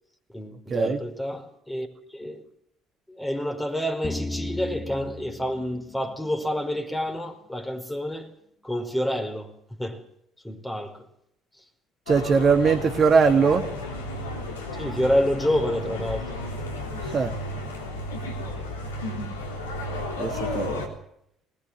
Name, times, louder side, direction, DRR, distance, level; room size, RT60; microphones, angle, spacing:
voice 1, 0.3-2.4 3.1-8.3 8.6-9.5 9.8-10.0 10.4-11.0 14.8-16.4, equal, 10° left, 5.1 m, -28 dB
sound 1, 4.0-7.0, left 2 dB, 30° left, 2.8 m, -36 dB
sound 2, 12.1-20.9, left 1 dB, 85° left, 3.6 m, -33 dB
voice 2, 12.1-13.7 17.0-17.3 20.2-20.7, right 5 dB, 40° right, 1.8 m, -20 dB
20.5 x 20.5 x 7.6 m
figure-of-eight pair, 55°, 0 cm